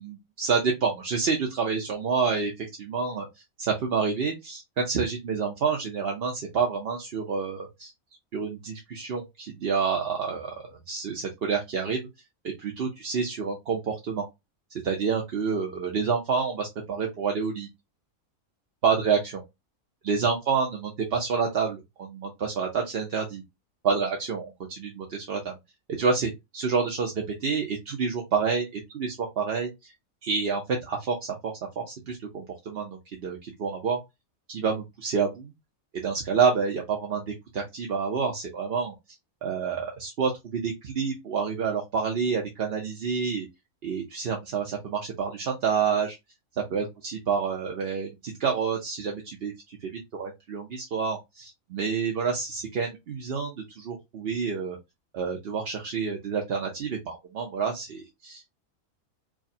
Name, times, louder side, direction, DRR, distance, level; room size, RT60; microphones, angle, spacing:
voice 1, 0.0-3.3 3.6-7.9 8.3-12.0 12.6-14.3 14.8-17.7 18.8-19.4 20.0-23.4 23.8-25.6 26.0-29.9 30.2-31.3 31.8-34.0 34.5-35.5 35.9-38.9 39.4-43.5 43.8-46.2 46.5-54.8 55.1-58.5, right 5 dB, 50° right, 1 dB, 0.8 m, -28 dB
4.8 x 2.2 x 2.6 m, 0.20 s
omnidirectional pair, 1.5 m